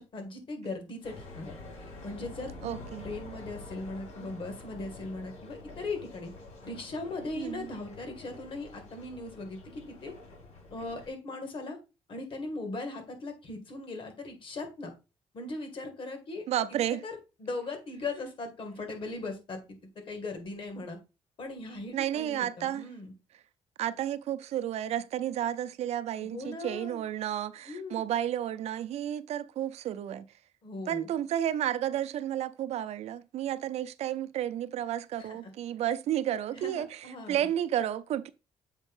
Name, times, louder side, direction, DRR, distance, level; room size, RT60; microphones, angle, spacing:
voice 1, 0.0-1.6 2.0-6.3 6.6-10.1 10.7-11.8 12.1-14.9 15.3-16.5 16.9-19.6 20.1-21.0 21.4-23.1 26.2-27.0 27.7-28.1 30.6-31.1 35.2-35.4 36.5-37.5, left 2 dB, 50° left, 2.2 m, -39 dB
sound 1, 1.0-11.1, left 2 dB, 80° left, 4.8 m, -47 dB
voice 2, 2.6-3.1 7.4-7.7 16.5-17.0 21.9-22.8 23.8-30.2 30.9-38.3, right 11 dB, 70° right, 0.5 m, -32 dB
7.4 x 3.5 x 5.4 m
cardioid pair, 130°, 11 cm